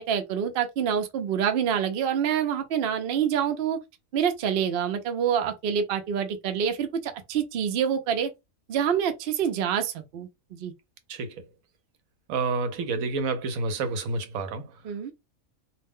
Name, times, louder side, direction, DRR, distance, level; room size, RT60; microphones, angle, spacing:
voice 1, 0.0-3.8 4.1-8.3 8.7-10.7 14.8-15.1, right 8 dB, 60° right, 0.6 m, -26 dB
voice 2, 11.1-11.4 12.3-14.7, right 3 dB, 80° right, 1.0 m, -29 dB
2.5 x 2.1 x 3.4 m
omnidirectional pair, 1.4 m